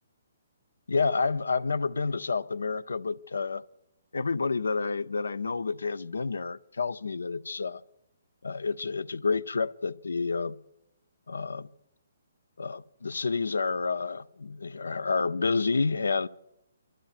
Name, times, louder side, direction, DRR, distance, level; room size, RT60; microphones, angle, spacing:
voice 1, 0.9-3.6 4.1-7.8 8.4-10.6 11.3-11.7 12.6-16.3, left 4 dB, 85° left, 0.5 m, -29 dB
27.0 x 13.0 x 2.4 m
hypercardioid pair, 150°, 0 cm